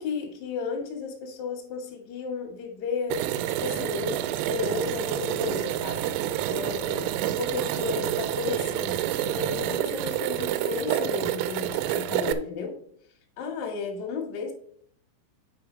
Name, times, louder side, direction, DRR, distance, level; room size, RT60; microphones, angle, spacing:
voice 1, 0.0-3.3 3.6-6.1 6.5-12.8 13.4-14.5, left 5 dB, 55° left, 0 dB, 2.0 m, -33 dB
sound 1, 3.1-12.3, right 12 dB, 85° right, 3.2 m, -28 dB
8.3 x 4.8 x 5.1 m, 0.64 s
omnidirectional pair, 5.8 m